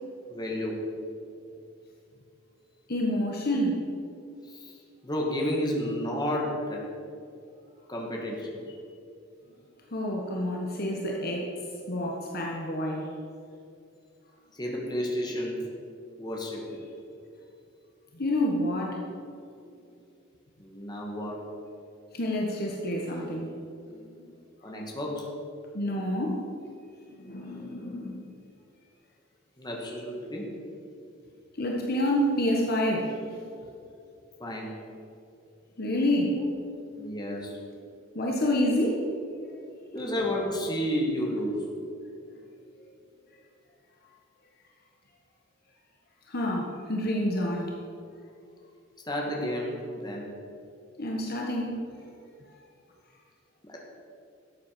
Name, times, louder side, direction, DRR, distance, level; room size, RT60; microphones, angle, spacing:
voice 1, 0.3-0.9 4.4-6.8 7.9-8.8 14.5-15.7 16.2-16.8 20.6-21.4 24.6-25.3 29.6-30.5 33.1-33.3 34.4-34.8 36.4-36.5 37.0-37.6 39.9-41.7 49.1-50.3 53.6-53.8, equal, 20° left, -2 dB, 2.3 m, -31 dB
voice 2, 2.9-3.8 9.9-11.5 11.9-13.1 18.1-19.0 22.1-23.5 24.0-24.1 25.7-26.5 27.1-28.3 31.6-33.2 35.8-36.4 38.1-39.1 46.3-47.7 51.0-51.9, left 1 dB, 50° left, -1 dB, 1.5 m, -28 dB
13.0 x 8.5 x 6.1 m, 2.5 s
head